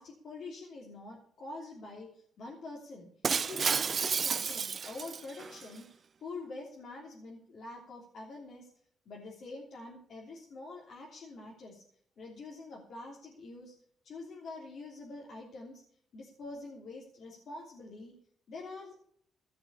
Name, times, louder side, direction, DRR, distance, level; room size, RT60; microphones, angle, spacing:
voice 1, 0.0-3.1 3.4-8.7 9.0-11.8 12.2-13.7 14.0-15.8 16.1-18.2 18.5-19.0, left 3 dB, 60° left, -2 dB, 3.2 m, -46 dB
Shatter, 3.2-5.6, right 6 dB, 45° right, 0.4 m, -31 dB
16.5 x 6.0 x 8.5 m, 0.63 s
cardioid pair, 90°, 0 cm